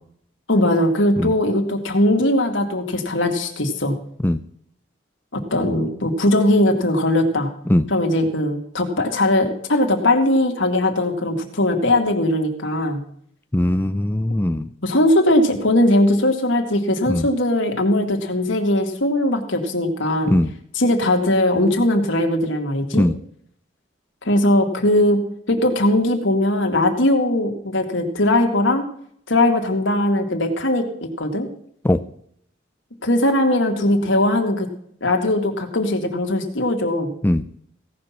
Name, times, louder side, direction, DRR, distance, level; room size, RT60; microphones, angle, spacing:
voice 1, 0.5-4.0 5.3-7.5 7.9-13.0 14.8-20.4 20.7-23.0 24.2-25.2 25.5-28.8 29.3-31.5 33.0-34.7 35.0-37.1, left 1 dB, 70° left, 4 dB, 2.2 m, -19 dB
voice 2, 13.5-14.7 17.1-17.3 20.3-20.5 22.9-23.2 31.8-32.0 37.2-37.4, left 1 dB, 10° left, 10 dB, 0.4 m, -19 dB
17.0 x 6.0 x 7.2 m, 0.67 s
head